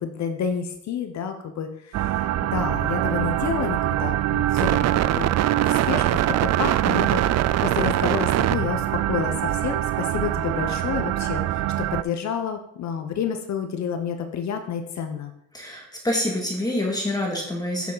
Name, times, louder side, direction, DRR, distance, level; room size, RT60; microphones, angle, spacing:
voice 1, 0.0-15.3, left 7 dB, 65° left, 7 dB, 1.0 m, -30 dB
sound 1, 1.9-12.0, right 13 dB, 60° right, 0.4 m, -23 dB
voice 2, 15.5-17.9, left 1 dB, 15° left, -1 dB, 2.2 m, -26 dB
8.2 x 6.5 x 4.0 m, 0.78 s
cardioid pair, 90°, 30 cm